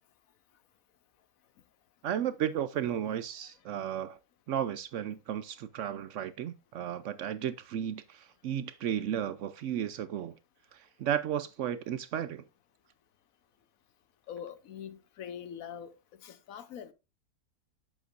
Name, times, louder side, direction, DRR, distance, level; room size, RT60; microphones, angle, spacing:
voice 1, 2.0-4.2 4.5-10.3 11.0-12.4, right 10 dB, 70° right, 0.8 m, -34 dB
voice 2, 14.3-15.9 16.2-16.9, left 8 dB, 70° left, 1.2 m, -43 dB
8.1 x 7.2 x 2.5 m
omnidirectional pair, 1.5 m